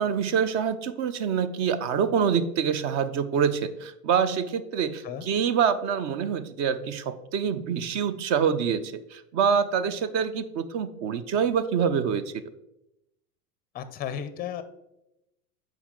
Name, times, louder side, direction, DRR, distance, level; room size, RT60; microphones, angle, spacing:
voice 1, 0.0-12.3, right 7 dB, 40° right, 13 dB, 0.5 m, -26 dB
voice 2, 13.7-14.6, left 9 dB, 20° left, 12 dB, 0.5 m, -34 dB
6.9 x 4.7 x 3.7 m, 0.86 s
hypercardioid pair, 100°, 47 cm